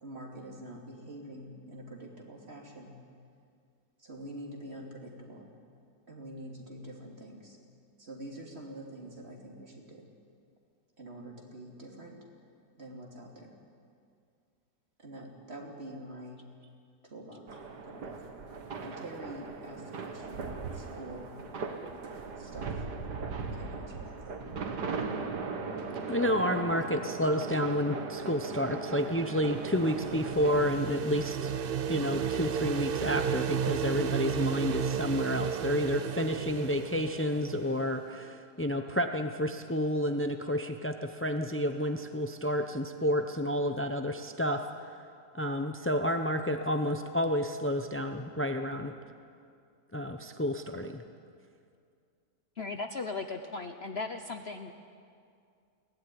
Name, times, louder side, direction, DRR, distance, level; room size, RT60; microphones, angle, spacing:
voice 1, 0.0-2.9 4.0-5.5 6.1-7.6 8.0-10.1 11.0-12.2 12.7-13.6 15.0-16.4 17.0-18.4 18.8-21.3 22.4-22.8 23.3-24.4 25.0-25.3, right 1 dB, 35° right, 0 dB, 3.3 m, -46 dB
sound 1, 17.5-30.7, right 4 dB, 75° right, 2.2 m, -38 dB
voice 2, 26.1-31.5 31.9-44.9 45.3-48.9 49.9-51.0, equal, 20° left, 6 dB, 0.3 m, -30 dB
sound 2, 29.2-38.0, right 7 dB, 55° right, 0.6 m, -33 dB
voice 3, 52.6-54.7, left 3 dB, 45° left, 6 dB, 1.0 m, -37 dB
22.0 x 17.5 x 9.9 m, 2.3 s
omnidirectional pair, 1.8 m